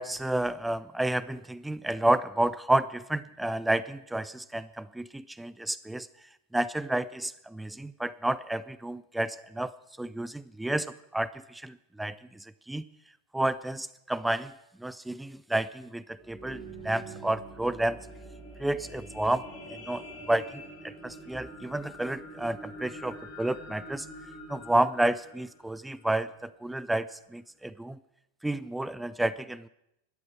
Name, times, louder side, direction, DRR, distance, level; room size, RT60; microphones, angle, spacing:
voice 1, 0.0-6.1 6.5-9.7 10.0-12.8 13.3-14.5 14.8-18.0 18.6-24.1 24.5-28.0 28.4-29.7, right 1 dB, 5° right, 17 dB, 0.4 m, -30 dB
sound 1, 16.1-26.5 27.1-27.2, right 1 dB, 30° left, 5.6 m, -45 dB
12.0 x 11.5 x 6.2 m, 0.81 s
figure-of-eight pair, 90°, 0 cm